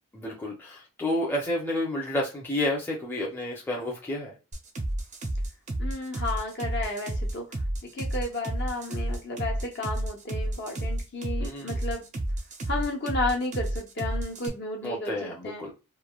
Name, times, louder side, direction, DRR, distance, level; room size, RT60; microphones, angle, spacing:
voice 1, 0.1-4.4 11.4-11.8 14.8-15.7, left 1 dB, 10° left, -3 dB, 0.6 m, -30 dB
sound 1, 4.5-14.5, right 1 dB, 35° right, 0.5 m, -30 dB
voice 2, 5.8-7.5 7.8-12.0 12.7-15.6, left 2 dB, 50° left, 1 dB, 0.8 m, -33 dB
3.1 x 2.2 x 2.3 m, 0.29 s
head